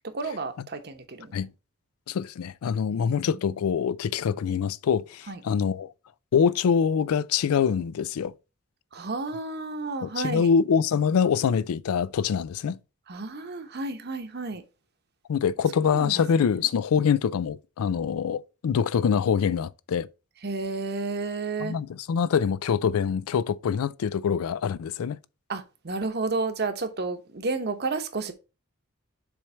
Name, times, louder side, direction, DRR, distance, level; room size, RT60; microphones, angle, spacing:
voice 1, 0.0-1.3 2.9-3.4 5.3-5.4 8.9-10.5 13.1-14.6 15.9-16.2 20.4-21.8 25.5-28.3, right 3 dB, 50° right, 0.9 m, -31 dB
voice 2, 2.1-5.9 6.3-8.3 10.0-12.8 15.3-20.1 21.6-25.2, left 7 dB, 90° left, 0.4 m, -25 dB
7.0 x 3.2 x 4.4 m
head